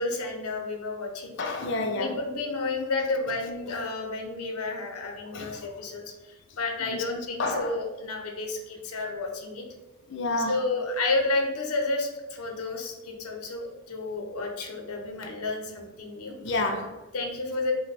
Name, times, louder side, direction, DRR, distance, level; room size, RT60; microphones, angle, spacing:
voice 1, 0.0-1.3 2.0-9.6 10.4-16.4 17.1-17.7, left 3 dB, 90° left, 3 dB, 0.8 m, -31 dB
voice 2, 1.4-2.1 5.3-5.5 6.8-7.0 7.4-7.7 10.1-10.5 16.4-17.0, left 2 dB, 55° left, 4 dB, 0.5 m, -29 dB
5.1 x 2.2 x 4.1 m, 1.1 s
head